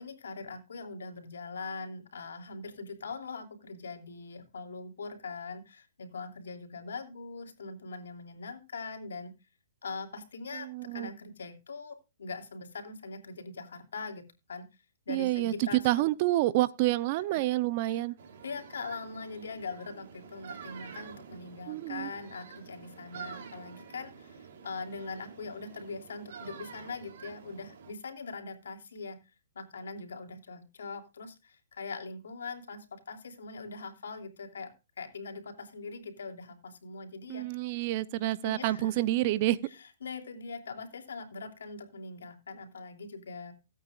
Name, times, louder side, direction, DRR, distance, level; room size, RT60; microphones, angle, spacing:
voice 1, 0.0-9.3 9.8-14.7 15.1-16.1 17.3-17.4 17.8-18.0 18.4-29.2 29.5-34.7 35.0-37.5 38.2-39.0 39.8-43.5, left 4 dB, 85° left, 2.9 m, -42 dB
voice 2, 10.5-11.1 15.1-18.1 21.7-22.1 37.3-39.6, right 16 dB, 40° right, 0.7 m, -28 dB
sound 1, 18.2-27.9, right 6 dB, 60° right, 3.4 m, -48 dB
17.5 x 8.8 x 2.5 m
hypercardioid pair, 145°, 0 cm